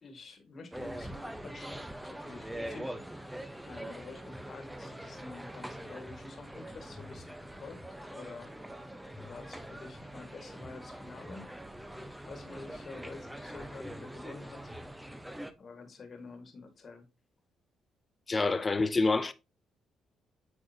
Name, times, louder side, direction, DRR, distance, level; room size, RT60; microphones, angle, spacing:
voice 1, 0.0-2.9 3.7-7.3 7.6-7.8 8.1-8.5 9.2-11.5 12.3-14.8 15.6-17.1, left 3 dB, 45° left, 1.8 m, -48 dB
sound 1, 0.7-15.5, right 1 dB, 5° right, 0.9 m, -43 dB
voice 2, 18.3-19.3, left 3 dB, 25° left, 0.6 m, -27 dB
8.5 x 4.7 x 2.8 m
cardioid pair, 90°, 0 cm